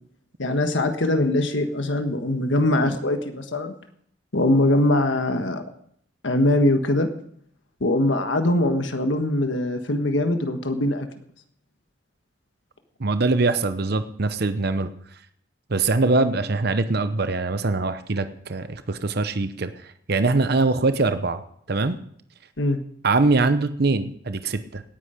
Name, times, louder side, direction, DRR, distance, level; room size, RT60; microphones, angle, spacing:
voice 1, 0.4-3.7 4.3-5.6 6.2-7.1 7.8-11.1 22.6-22.8, left 1 dB, 75° left, 7 dB, 1.4 m, -22 dB
voice 2, 13.0-14.9 15.7-19.7 20.1-21.4 21.7-22.0 23.0-24.8, right 3 dB, 55° right, 11 dB, 0.8 m, -22 dB
18.0 x 10.0 x 5.1 m, 0.65 s
head